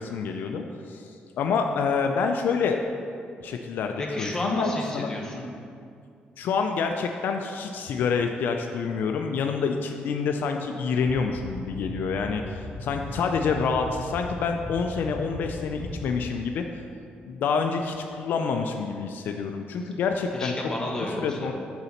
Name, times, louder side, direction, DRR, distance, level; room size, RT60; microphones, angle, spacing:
voice 1, 0.0-2.8 3.4-5.1 6.4-16.6 17.2-20.5 21.2-21.5, left 5 dB, 70° left, 4 dB, 0.4 m, -27 dB
voice 2, 4.0-5.5 20.3-21.5, left 1 dB, 15° left, -2 dB, 1.1 m, -31 dB
sound 1, 11.3-16.2, left 2 dB, 45° left, 0.9 m, -36 dB
6.9 x 4.0 x 5.7 m, 2.4 s
cardioid pair, 125°, 3 cm